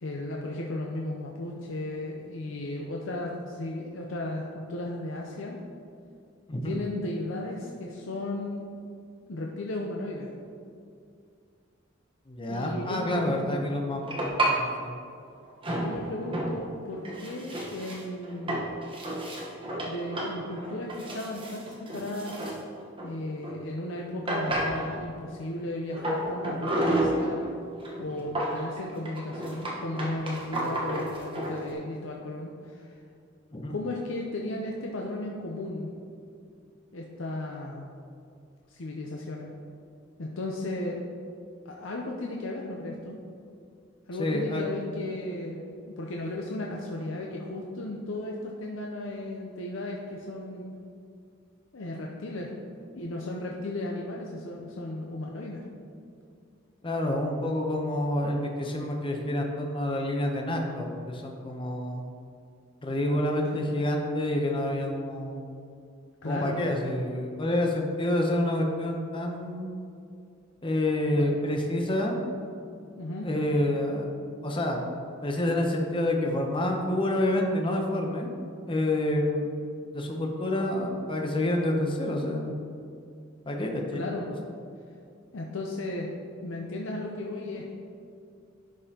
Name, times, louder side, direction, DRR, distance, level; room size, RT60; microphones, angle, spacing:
voice 1, 0.0-5.6 6.6-8.6 9.3-10.3 12.5-13.6 15.7-18.7 19.8-22.5 23.0-27.4 28.0-33.0 33.7-35.9 36.9-37.9 38.7-39.5 40.2-41.0 41.6-43.2 44.1-50.7 51.7-52.5 52.9-55.6 63.5-63.6 66.2-66.6 71.1-71.2 73.0-73.3 83.9-84.3 85.3-86.1 86.4-87.6, left 1 dB, 70° left, -1 dB, 0.6 m, -35 dB
voice 2, 12.3-14.0 14.4-14.9 33.5-33.7 44.2-44.7 56.8-62.1 62.8-65.4 66.2-69.7 70.6-72.2 73.2-74.1 74.4-74.8 75.2-78.3 78.7-79.6 79.9-82.5 83.5-84.1, left 1 dB, 25° left, 1 dB, 0.8 m, -28 dB
sound 1, 14.0-14.6 15.6-16.6 16.9-23.6 23.9-24.0 24.3-25.1 25.9-27.5 27.8-31.6, right 1 dB, 25° right, 1.1 m, -31 dB
11.0 x 5.3 x 2.9 m, 2.4 s
head